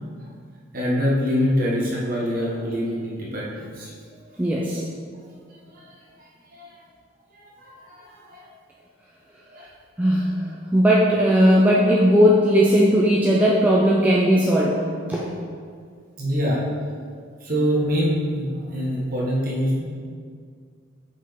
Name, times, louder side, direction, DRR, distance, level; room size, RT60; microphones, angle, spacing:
voice 1, 0.7-3.9 4.2-4.4 5.7-6.8 7.3-8.5 9.5-9.7 16.2-16.6 17.4-19.8, equal, 45° right, -5 dB, 1.3 m, -25 dB
voice 2, 4.4-4.8 10.0-10.4 10.7-14.8 15.1-15.3, equal, 10° right, -5 dB, 0.4 m, -17 dB
5.7 x 5.3 x 3.6 m, 2.1 s
head